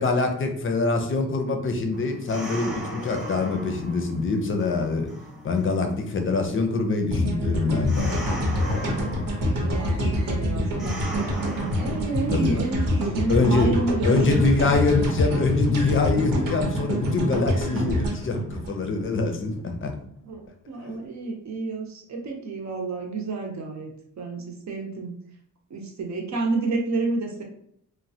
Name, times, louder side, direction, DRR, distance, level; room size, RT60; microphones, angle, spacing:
voice 1, 0.0-5.1 5.4-8.3 12.3-12.6 13.3-13.7 14.0-19.9, left 3 dB, 40° left, 4 dB, 0.5 m, -24 dB
sound 1, 1.9-13.0, equal, ahead, 0.8 m, -39 dB
sound 2, 7.1-19.3, left 1 dB, 80° right, 0.9 m, -26 dB
voice 2, 9.6-11.1 11.8-14.4 20.2-25.2 25.7-27.4, right 3 dB, 60° right, 1 dB, 0.7 m, -30 dB
3.1 x 2.1 x 2.7 m, 0.68 s
wide cardioid pair, 115°, 33 cm